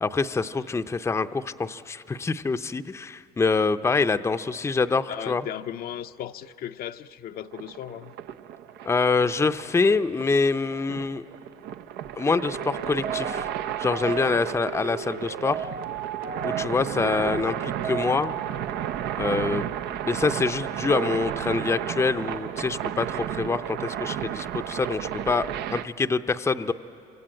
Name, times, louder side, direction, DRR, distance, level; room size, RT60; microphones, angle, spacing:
voice 1, 0.0-5.4 8.8-11.2 12.2-13.5 13.8-15.7 16.4-18.4 19.2-19.7 20.0-26.7, left 4 dB, 15° left, 0.6 m, -25 dB
voice 2, 5.1-8.1, left 10 dB, 60° left, 0.6 m, -36 dB
sound 1, 7.5-25.9, right 10 dB, 80° right, 0.7 m, -33 dB
sound 2, 12.4-18.5, right 6 dB, 60° right, 1.1 m, -35 dB
26.5 x 25.0 x 8.9 m
cardioid pair, 110°, 17 cm